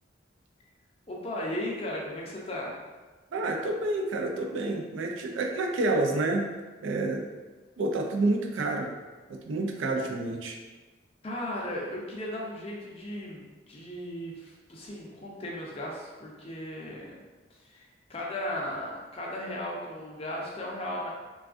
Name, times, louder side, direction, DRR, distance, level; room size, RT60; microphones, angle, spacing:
voice 1, 1.1-2.8 11.2-17.1 17.6-21.1, left 1 dB, 30° left, -2 dB, 0.5 m, -36 dB
voice 2, 3.3-6.5 6.8-7.3 7.8-8.9 9.5-10.6, right 2 dB, 85° right, 2 dB, 0.4 m, -28 dB
3.4 x 2.3 x 2.4 m, 1.3 s
head